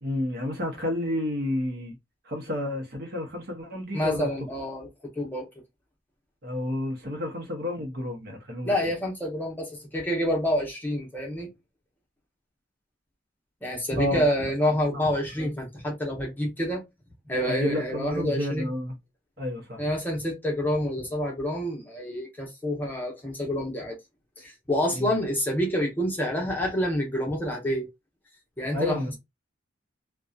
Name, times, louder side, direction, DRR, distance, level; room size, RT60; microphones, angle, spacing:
voice 1, 0.0-2.0 2.2-4.3 6.4-8.7 14.0-14.3 14.6-15.1 15.4-15.5 17.5-19.0 19.4-19.8 24.9-25.1 28.7-29.2, left 1 dB, 55° right, 0.8 m, -30 dB
voice 2, 3.9-4.9 5.2-5.5 8.6-11.5 13.6-16.8 17.3-18.7 19.8-24.0 24.4-27.9 28.6-29.0, equal, 10° left, 0.8 m, -28 dB
2.7 x 2.2 x 2.3 m
head